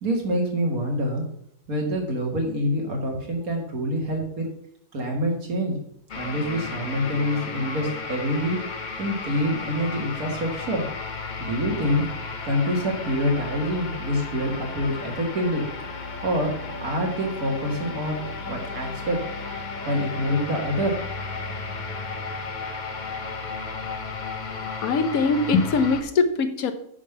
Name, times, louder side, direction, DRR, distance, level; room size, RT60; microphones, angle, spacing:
voice 1, 0.0-1.2 1.7-4.5 4.9-5.8 6.2-8.6 9.0-10.8 11.4-12.0 12.4-15.7 16.2-16.5 16.8-19.2 19.9-21.0, equal, 80° right, 0 dB, 2.2 m, -26 dB
sound 1, 6.1-26.0, left 4 dB, 40° left, 0.8 m, -34 dB
voice 2, 24.8-26.7, left 4 dB, 80° left, 9 dB, 1.3 m, -22 dB
9.8 x 3.6 x 6.7 m, 0.69 s
omnidirectional pair, 1.5 m